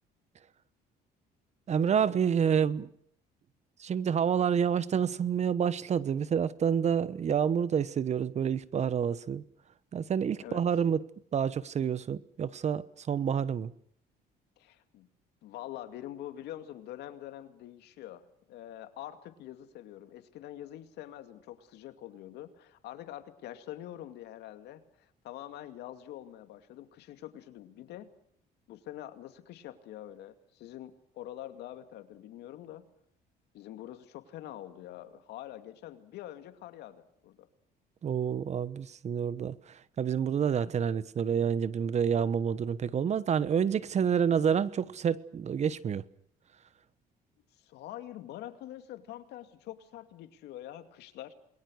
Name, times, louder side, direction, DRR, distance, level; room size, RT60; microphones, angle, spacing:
voice 1, 1.7-2.9 3.8-9.4 9.9-11.0 11.3-13.7 38.0-46.0, right 7 dB, 40° right, 1.1 m, -28 dB
voice 2, 14.6-15.1 15.4-28.1 28.7-32.8 33.5-37.5 47.6-51.3, left 12 dB, 80° left, 2.5 m, -45 dB
28.5 x 21.5 x 6.5 m
cardioid pair, 110°, 17 cm